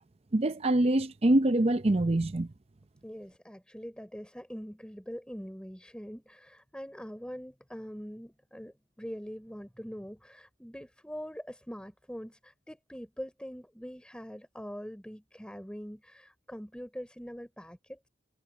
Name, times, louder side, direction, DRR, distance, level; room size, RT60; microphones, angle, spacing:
voice 1, 0.3-2.5, right 1 dB, 30° right, 0.6 m, -25 dB
voice 2, 3.0-18.1, equal, 5° left, 3.9 m, -43 dB
head